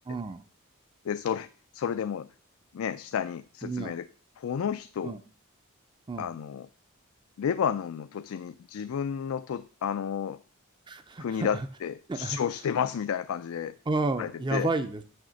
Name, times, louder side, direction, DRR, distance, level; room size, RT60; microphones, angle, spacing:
voice 1, 0.1-0.4 3.6-3.9 5.0-5.2 6.1-6.3 10.9-11.7 12.1-12.4 13.9-15.1, right 3 dB, 20° right, 9 dB, 0.5 m, -31 dB
voice 2, 1.0-1.5 1.7-2.3 2.7-4.1 4.4-5.2 6.2-6.7 7.4-10.4 11.2-13.8 14.2-14.7, left 8 dB, 80° left, 12 dB, 0.4 m, -31 dB
6.6 x 6.5 x 6.2 m, 0.41 s
head